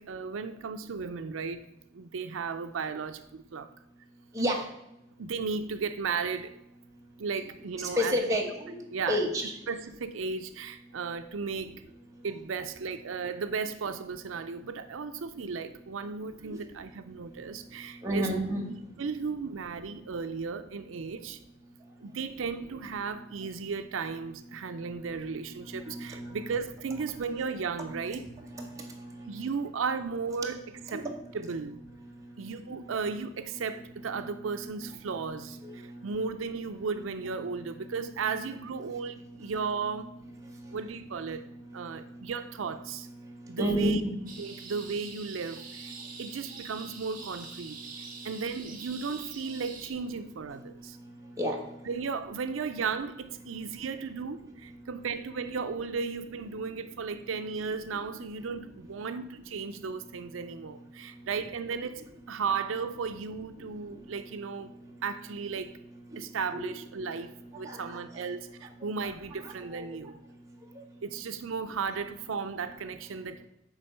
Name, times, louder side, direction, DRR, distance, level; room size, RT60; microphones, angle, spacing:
voice 1, 0.0-1.6 1.9-3.7 5.2-6.5 7.2-8.4 8.9-9.2 9.7-11.8 12.2-18.3 19.0-21.4 22.0-28.2 29.2-31.1 31.3-31.8 32.4-40.2 40.7-41.4 41.7-43.1 43.5-44.0 44.4-51.0 51.9-64.7 65.0-65.7 66.2-70.2 71.0-73.5, right 5 dB, 80° right, 9 dB, 0.5 m, -35 dB
voice 2, 7.9-8.8 9.1-9.5 18.0-18.6 25.7-26.5 27.9-28.2 28.5-28.9 30.9-31.2 34.8-34.9 35.6-35.8 43.6-44.1 51.4-51.6 66.5-66.6 67.6-68.0 69.4-69.8, equal, 15° right, -1 dB, 1.4 m, -30 dB
sound 1, 44.3-49.9, right 5 dB, 45° right, 1.5 m, -45 dB
9.7 x 3.7 x 6.6 m, 0.86 s
head